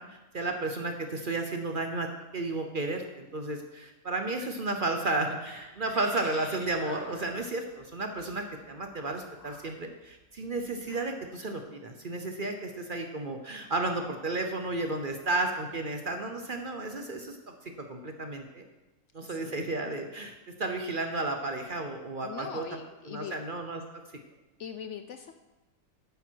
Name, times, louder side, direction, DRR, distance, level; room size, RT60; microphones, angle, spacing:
voice 1, 0.0-2.1 2.3-18.6 19.1-22.6 23.1-23.8, right 2 dB, 40° right, 5 dB, 0.9 m, -33 dB
sound 1, 5.5-11.0, left 1 dB, 35° left, 3.2 m, -49 dB
voice 2, 19.2-19.6 22.2-23.4 24.6-25.3, left 7 dB, 65° left, 8 dB, 0.8 m, -41 dB
10.5 x 8.8 x 4.6 m, 1.1 s
omnidirectional pair, 1.6 m